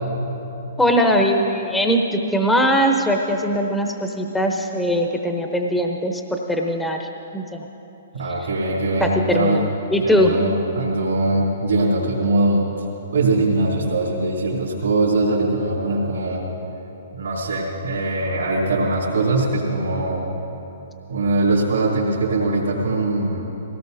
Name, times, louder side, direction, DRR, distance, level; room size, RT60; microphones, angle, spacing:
voice 1, 0.8-7.1 7.3-7.6 9.0-10.3, equal, 5° left, 2 dB, 0.9 m, -20 dB
voice 2, 8.1-9.6 10.0-12.8 13.1-16.4 17.1-20.2 21.1-23.4, right 2 dB, 80° right, -8 dB, 3.0 m, -21 dB
20.0 x 17.5 x 2.7 m, 3.0 s
hypercardioid pair, 130°, 0 cm